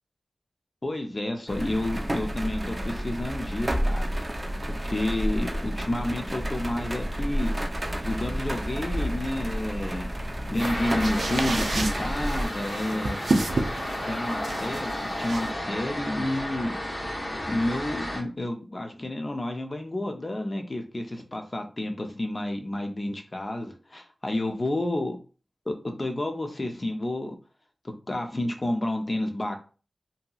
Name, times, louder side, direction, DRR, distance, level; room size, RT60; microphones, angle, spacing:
voice 1, 0.8-4.1 4.6-7.5 8.0-10.1 10.5-13.3 14.0-16.7 17.5-25.2 25.7-27.4 27.8-29.6, left 1 dB, 40° left, 4 dB, 0.6 m, -30 dB
sound 1, 1.5-12.5, equal, 30° right, 0.5 m, -30 dB
sound 2, 10.5-15.5, right 2 dB, 90° right, 0.4 m, -31 dB
sound 3, 10.6-18.2, left 1 dB, 55° left, 1.0 m, -32 dB
2.8 x 2.8 x 2.3 m, 0.36 s
wide cardioid pair, 70°, 0 cm